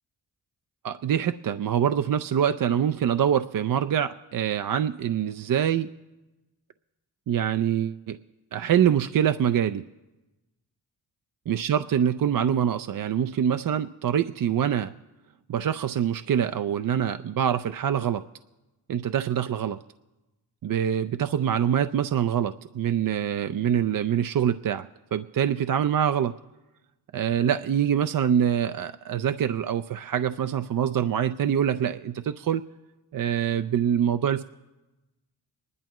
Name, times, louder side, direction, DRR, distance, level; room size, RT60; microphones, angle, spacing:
voice 1, 0.8-5.9 7.3-8.2 8.5-9.9 11.5-14.9 15.5-18.2 18.9-19.8 20.6-26.3 27.1-32.6 33.1-34.4, right 9 dB, 45° right, 10 dB, 0.5 m, -25 dB
25.0 x 11.0 x 3.0 m, 1.1 s
supercardioid pair, 45°, 46 cm